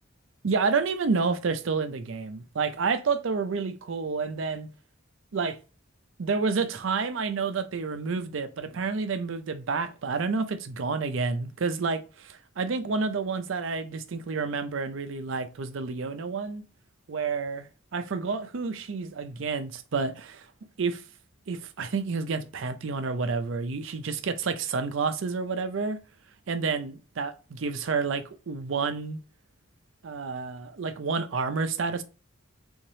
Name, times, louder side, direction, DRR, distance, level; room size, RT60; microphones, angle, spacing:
voice 1, 0.4-4.7 5.3-5.6 6.2-16.6 17.1-20.5 20.8-21.0 21.5-26.0 26.5-29.2 30.0-32.0, right 4 dB, 65° right, 0.5 m, -29 dB
3.5 x 3.3 x 2.7 m
head